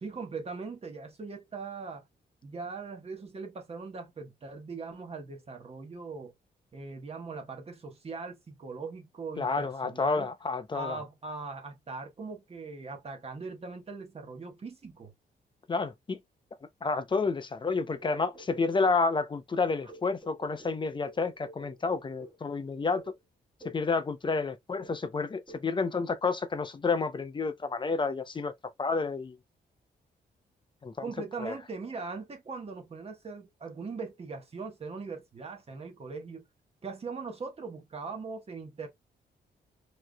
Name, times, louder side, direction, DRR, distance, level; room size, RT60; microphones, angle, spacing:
voice 1, 0.0-2.0 2.4-6.3 6.7-10.3 10.7-15.1 31.0-36.5 36.8-38.9, right 4 dB, 35° right, 1.3 m, -40 dB
voice 2, 9.4-11.0 15.7-16.2 16.8-23.0 23.6-28.5 28.8-29.3 30.8-31.0 31.4-31.5, left 4 dB, 25° left, 0.6 m, -30 dB
sound 1, 17.7-19.1 19.6-22.5 22.9-23.2 23.6-23.9 24.2-24.5 24.8-25.1 25.5-25.7, right 1 dB, 15° right, 1.5 m, -51 dB
4.6 x 3.1 x 2.2 m
cardioid pair, 120°, 18 cm